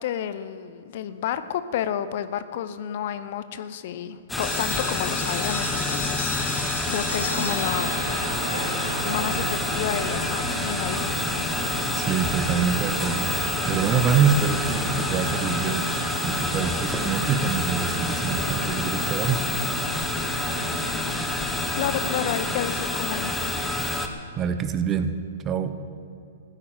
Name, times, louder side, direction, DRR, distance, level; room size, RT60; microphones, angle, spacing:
voice 1, 0.0-6.4 6.9-7.9 9.0-11.1 21.7-23.6, left 9 dB, 55° left, 13 dB, 0.8 m, -30 dB
sound 1, 4.3-24.1, left 2 dB, 5° left, 1.4 m, -28 dB
sound 2, 4.4-10.1, left 3 dB, 85° left, 3.0 m, -35 dB
sound 3, 7.1-22.6, right 2 dB, 85° right, 3.3 m, -35 dB
voice 2, 11.9-13.3 13.6-15.8 16.2-19.5 24.3-25.1 25.4-25.7, right 6 dB, 25° right, 10 dB, 1.1 m, -25 dB
15.0 x 9.9 x 8.0 m, 2.7 s
hypercardioid pair, 120°, 0 cm